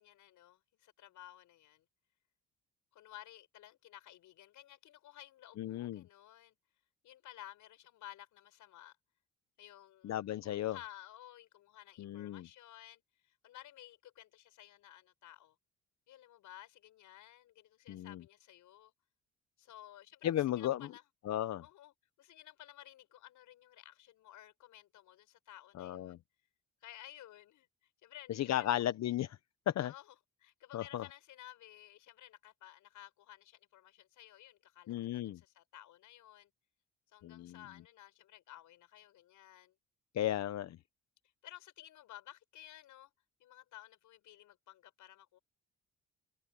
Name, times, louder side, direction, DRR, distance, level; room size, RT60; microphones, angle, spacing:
voice 1, 0.0-1.8 2.9-6.6 7.0-8.9 9.6-15.5 16.1-18.9 19.6-21.0 21.6-26.2 26.8-27.7 28.0-28.7 29.8-36.5 37.1-39.7 41.4-43.1 43.4-45.4, left 13 dB, 85° left, 6.5 m, -55 dB
voice 2, 5.6-6.0 10.0-10.8 12.0-12.5 17.9-18.2 20.2-20.8 21.3-21.6 25.8-26.2 28.3-29.3 29.7-29.9 30.7-31.0 34.9-35.4 37.2-37.6 40.1-40.8, left 12 dB, 60° left, 0.8 m, -34 dB
cardioid pair, 90°, 30 cm